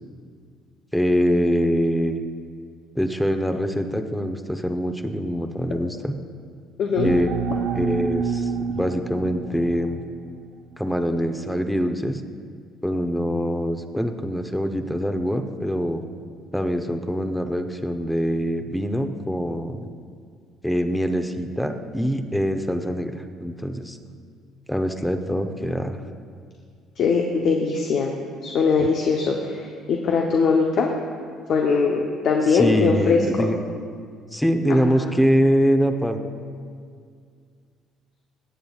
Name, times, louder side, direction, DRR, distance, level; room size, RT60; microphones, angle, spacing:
voice 1, 0.9-2.2 3.0-6.1 7.0-7.3 7.7-10.0 10.8-12.2 12.8-16.0 16.5-19.9 20.6-23.1 23.4-24.0 24.7-26.0 28.8-28.9 32.5-33.5 34.3-36.2, equal, 5° left, 6 dB, 0.8 m, -24 dB
sound 1, 7.0-10.4, right 5 dB, 80° right, 0.8 m, -28 dB
voice 2, 27.0-28.1 28.4-30.9 31.5-33.5 34.7-35.1, left 5 dB, 60° left, 1 dB, 0.8 m, -21 dB
18.0 x 7.9 x 2.4 m, 2.1 s
supercardioid pair, 70°, 0 cm